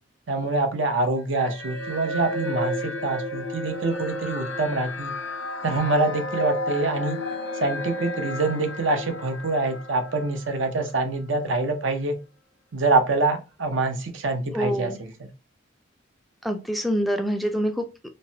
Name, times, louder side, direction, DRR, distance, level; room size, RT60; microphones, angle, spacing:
voice 1, 0.3-5.1 5.6-7.2 7.6-12.2 12.7-14.9, right 3 dB, 80° right, 6 dB, 0.7 m, -25 dB
sound 1, 1.3-10.8, left 1 dB, 85° left, 0.7 m, -32 dB
voice 2, 14.5-15.0 16.4-18.1, equal, ahead, 5 dB, 0.3 m, -26 dB
3.1 x 2.1 x 2.7 m, 0.30 s
head